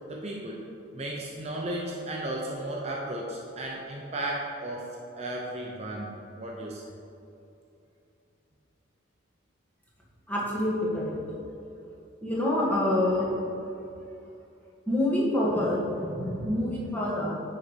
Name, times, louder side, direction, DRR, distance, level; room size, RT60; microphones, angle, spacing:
voice 1, 0.1-6.9, right 1 dB, 30° right, -2 dB, 0.7 m, -35 dB
voice 2, 10.3-11.1 12.2-13.3 14.9-17.3, left 1 dB, 10° left, -6 dB, 1.6 m, -26 dB
9.5 x 4.2 x 5.1 m, 2.8 s
head